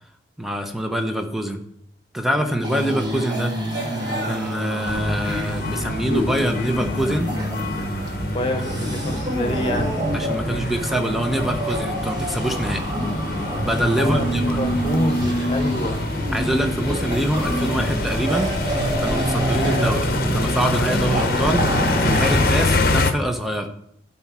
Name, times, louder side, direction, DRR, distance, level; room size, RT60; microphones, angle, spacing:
voice 1, 0.4-1.6 2.1-3.5 4.3-7.3 10.1-12.9 13.6-14.6 16.3-18.7 19.0-23.7, right 1 dB, ahead, 4 dB, 0.9 m, -25 dB
voice 2, 2.4-2.7 8.3-10.0 14.0-16.0, left 1 dB, 30° left, 5 dB, 1.2 m, -27 dB
sound 1, 2.6-22.5, right 1 dB, 25° right, 1.7 m, -27 dB
sound 2, 3.7-22.8, equal, 65° right, 3.2 m, -36 dB
sound 3, 4.9-23.1, left 2 dB, 55° left, 0.9 m, -26 dB
12.0 x 4.3 x 6.1 m, 0.74 s
head